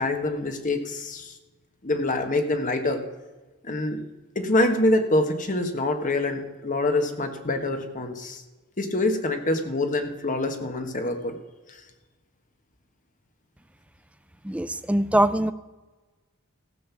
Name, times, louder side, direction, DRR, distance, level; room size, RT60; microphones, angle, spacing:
voice 1, 0.0-1.3 1.8-3.0 3.6-4.0 4.3-8.4 8.8-11.4, left 2 dB, 35° left, 6 dB, 1.3 m, -25 dB
voice 2, 14.4-15.5, right 1 dB, 5° right, 11 dB, 0.4 m, -22 dB
15.0 x 6.6 x 7.0 m, 1.2 s
head